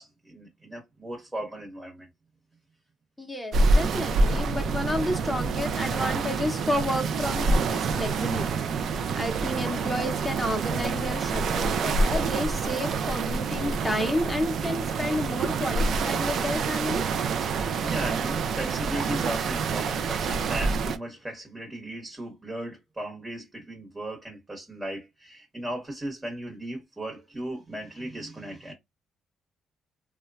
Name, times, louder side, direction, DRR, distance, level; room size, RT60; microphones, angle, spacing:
voice 1, 0.0-2.1 17.4-28.7, right 1 dB, 15° right, 1.0 m, -36 dB
voice 2, 3.2-8.6 8.9-17.0, left 1 dB, 5° left, 0.6 m, -31 dB
sound 1, 3.5-21.0, right 4 dB, 65° right, 0.4 m, -27 dB
3.1 x 2.1 x 2.3 m
cardioid pair, 90°, 0 cm